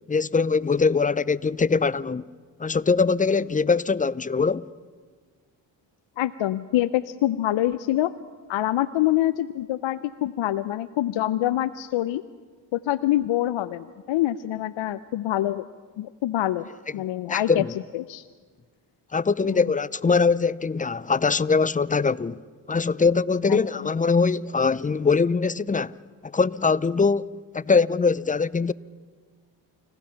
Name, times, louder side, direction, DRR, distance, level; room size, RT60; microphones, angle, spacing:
voice 1, 0.1-2.2 2.6-4.7 17.3-17.7 19.1-22.4 22.7-25.9 26.2-28.7, left 4 dB, 15° left, 0.5 m, -22 dB
voice 2, 6.2-8.1 8.5-12.2 12.7-15.6 16.0-16.7 16.9-17.6 17.9-18.3 19.4-19.6 23.5-23.6, left 14 dB, 70° left, 0.7 m, -25 dB
29.5 x 15.5 x 5.7 m
supercardioid pair, 50°, 48 cm